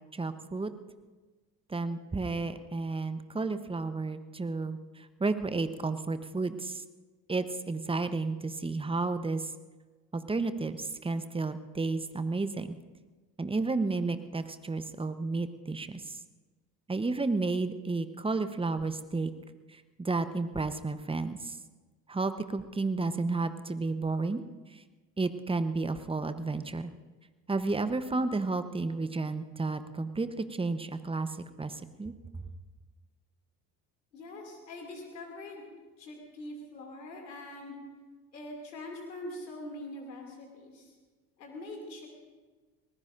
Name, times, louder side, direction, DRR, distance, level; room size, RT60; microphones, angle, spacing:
voice 1, 0.1-0.7 1.7-6.8 7.3-9.5 10.1-12.8 13.4-16.2 16.9-19.3 19.7-21.6 22.1-24.4 24.7-24.8 25.2-26.9 27.5-31.3 31.6-32.1, right 3 dB, 10° right, 11 dB, 0.9 m, -32 dB
voice 2, 34.1-35.7 36.0-37.8 38.3-40.9 41.4-42.1, left 1 dB, 85° left, 1 dB, 2.7 m, -43 dB
25.0 x 19.5 x 2.6 m, 1.3 s
hypercardioid pair, 65°, 49 cm